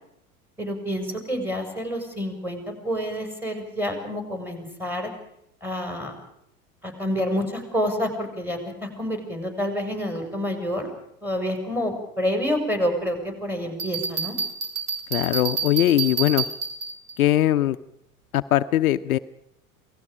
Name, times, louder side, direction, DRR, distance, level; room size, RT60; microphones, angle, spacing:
voice 1, 0.6-5.1 5.6-6.1 6.8-10.9 11.2-14.4, equal, 5° right, 3 dB, 6.2 m, -28 dB
Bell, 13.8-17.1, right 6 dB, 80° right, 3.9 m, -29 dB
voice 2, 15.1-16.4 17.2-17.8 18.3-19.2, left 13 dB, 70° left, 11 dB, 0.8 m, -20 dB
28.0 x 19.0 x 5.1 m, 0.78 s
figure-of-eight pair, 85°, 44 cm